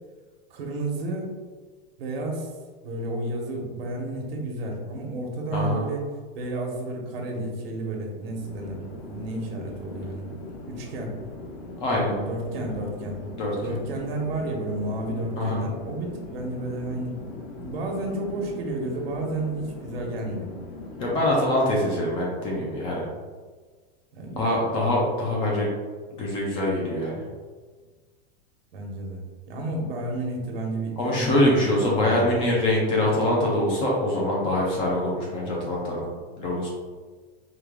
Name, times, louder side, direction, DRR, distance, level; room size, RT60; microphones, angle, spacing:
voice 1, 0.5-1.3 2.0-2.5 2.8-6.0 6.3-10.3 10.7-11.2 11.9-13.2 13.6-17.2 17.5-20.5 24.1-24.8 28.7-32.4, right 2 dB, 75° right, 1 dB, 1.2 m, -31 dB
Chatter / Fixed-wing aircraft airplane, 8.1-21.6, left 3 dB, 80° left, 1.1 m, -40 dB
voice 2, 11.8-12.1 13.4-13.8 15.4-15.6 21.0-23.1 24.4-25.7 26.1-27.2 31.0-36.1 36.4-36.7, left 1 dB, 20° left, -3 dB, 0.4 m, -24 dB
4.7 x 2.3 x 3.5 m, 1.4 s
supercardioid pair, 170°, 30 cm